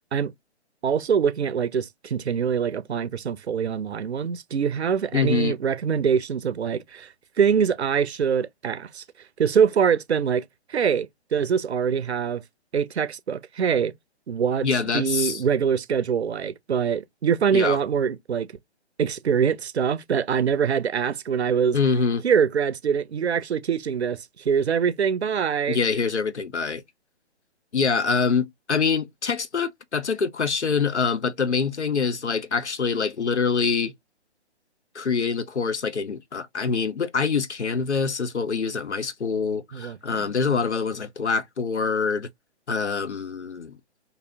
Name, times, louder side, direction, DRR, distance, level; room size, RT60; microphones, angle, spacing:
voice 1, 0.8-9.0 9.4-10.4 10.7-12.4 12.7-13.9 14.3-14.7 14.9-18.5 19.0-21.8 22.2-25.8 39.7-40.3, right 7 dB, 75° right, 0.5 m, -24 dB
voice 2, 5.1-5.6 14.6-15.4 17.5-17.8 21.7-22.2 25.7-26.8 27.7-33.9 34.9-42.3 42.7-43.8, left 5 dB, 85° left, 0.6 m, -25 dB
2.9 x 2.7 x 2.5 m
figure-of-eight pair, 135°, 33 cm